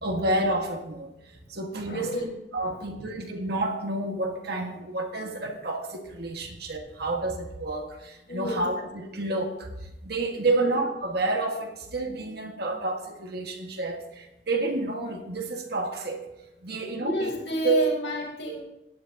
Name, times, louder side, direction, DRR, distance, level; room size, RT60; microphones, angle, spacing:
voice 1, 0.0-1.1 1.5-9.7 10.0-16.2 16.6-17.3 17.6-17.9 18.5-18.6, right 2 dB, 60° right, 2 dB, 1.7 m, -29 dB
voice 2, 1.9-2.3 2.6-2.8 8.3-8.6 10.5-10.7 17.0-18.6, left 1 dB, 85° left, -3 dB, 4.8 m, -30 dB
17.5 x 9.7 x 2.8 m, 0.88 s
head